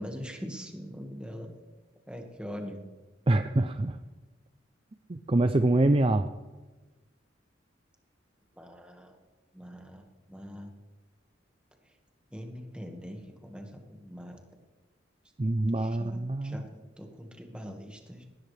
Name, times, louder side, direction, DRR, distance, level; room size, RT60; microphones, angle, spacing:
voice 1, 0.0-1.5 2.1-2.8 8.6-9.1 9.5-10.7 12.3-14.4 15.8-18.2, equal, 5° right, 2 dB, 1.8 m, -42 dB
voice 2, 3.3-4.0 5.1-6.3 15.4-16.6, right 2 dB, 30° right, 8 dB, 0.5 m, -25 dB
19.5 x 17.5 x 3.4 m, 1.2 s
head